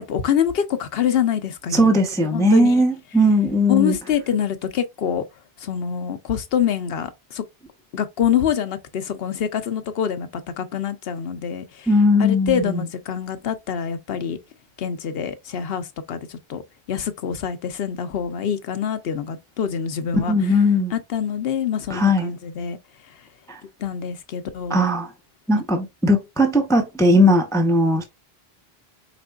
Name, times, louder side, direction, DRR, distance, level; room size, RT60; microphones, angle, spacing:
voice 1, 0.0-1.9 2.3-2.8 3.7-5.2 5.6-7.4 7.9-11.9 12.2-14.4 14.8-16.6 16.9-20.3 20.9-22.8 23.1-23.2 23.8-24.8, left 8 dB, 70° left, 0.9 m, -25 dB
voice 2, 1.7-3.9 11.9-12.8 20.3-20.9 21.9-22.3 23.5-23.6 24.7-25.1 25.5-28.0, left 1 dB, 5° left, 0.6 m, -18 dB
5.1 x 3.5 x 2.3 m
omnidirectional pair, 1.1 m